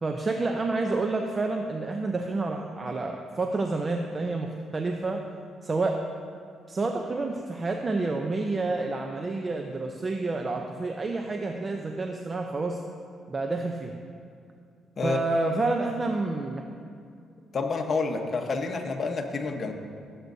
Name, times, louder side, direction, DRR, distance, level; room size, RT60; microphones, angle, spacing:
voice 1, 0.0-5.2 5.6-6.0 6.7-12.8 13.3-13.9 15.0-16.6, right 3 dB, 30° right, 3 dB, 0.6 m, -29 dB
voice 2, 17.5-19.7, left 4 dB, 45° left, 4 dB, 1.0 m, -29 dB
15.5 x 7.8 x 2.7 m, 2.4 s
cardioid pair, 90°, 0 cm